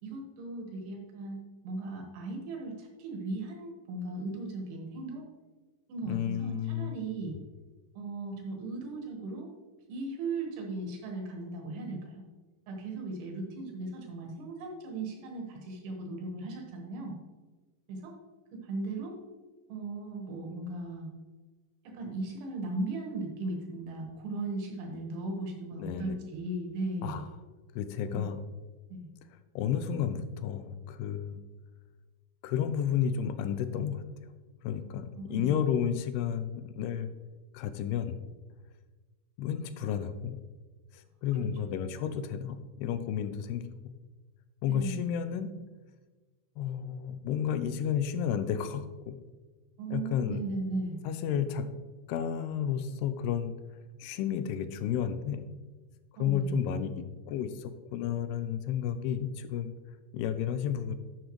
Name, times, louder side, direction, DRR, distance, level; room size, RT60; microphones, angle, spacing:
voice 1, 0.0-5.3 5.9-7.4 8.0-9.5 9.9-12.3 12.7-17.2 17.9-18.2 18.5-19.2 19.7-21.1 21.9-27.2 28.1-28.3 28.9-29.1 35.2-35.6 42.1-42.2 44.7-45.1 49.8-51.0 56.2-56.6, right 2 dB, 90° right, 1 dB, 3.6 m, -37 dB
voice 2, 6.1-7.0 25.8-26.2 27.0-27.3 27.8-28.4 29.6-31.4 32.4-34.0 34.6-37.1 37.5-38.2 39.4-40.4 40.9-43.6 44.6-45.5 46.6-49.2 49.9-50.4 51.0-51.7 52.1-53.5 54.0-55.4 56.2-59.7 60.1-61.0, left 8 dB, 85° left, 11 dB, 2.6 m, -32 dB
11.5 x 7.0 x 3.1 m, 1.3 s
omnidirectional pair, 4.6 m